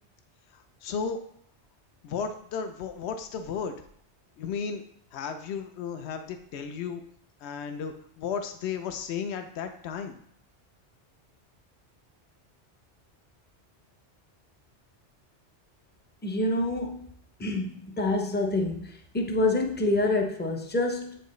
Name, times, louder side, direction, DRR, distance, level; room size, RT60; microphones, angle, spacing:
voice 1, 0.8-1.2 2.0-3.7 4.4-4.8 5.1-7.0 7.4-10.2, left 6 dB, 70° left, 7 dB, 0.9 m, -34 dB
voice 2, 16.2-17.0 17.4-21.2, left 2 dB, 15° left, 2 dB, 0.4 m, -27 dB
7.8 x 4.5 x 3.1 m, 0.66 s
omnidirectional pair, 1.2 m